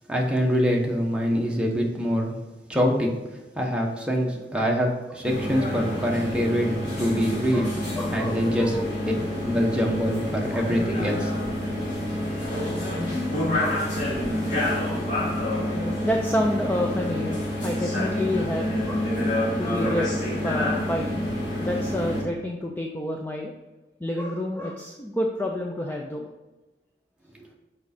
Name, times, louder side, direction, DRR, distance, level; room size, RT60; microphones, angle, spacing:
voice 1, 0.1-2.4 2.7-3.1 3.5-7.7 8.1-8.8 9.4-11.3, equal, 5° right, -1 dB, 1.0 m, -24 dB
sound 1, 5.2-22.2, left 1 dB, 45° left, 2.2 m, -28 dB
voice 2, 7.5-9.1 10.5-10.7 13.6-13.9 15.3-15.6 16.0-19.1 19.6-21.3 21.6-23.5 24.0-26.3, left 1 dB, 10° left, 1 dB, 0.4 m, -29 dB
6.2 x 5.1 x 4.3 m, 1.1 s
head